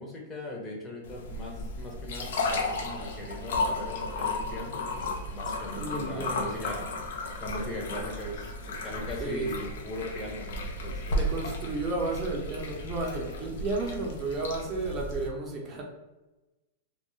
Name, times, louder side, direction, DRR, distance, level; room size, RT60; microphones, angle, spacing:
voice 1, 0.0-6.9 7.2-11.2, left 1 dB, 20° left, -2 dB, 0.8 m, -39 dB
sound 1, 1.1-15.3, left 2 dB, 70° left, 0.5 m, -34 dB
voice 2, 5.8-6.4 9.2-9.6 11.2-15.8, right 2 dB, 30° right, -1 dB, 0.6 m, -32 dB
2.2 x 2.0 x 3.1 m, 1.1 s
hypercardioid pair, 110°, 0 cm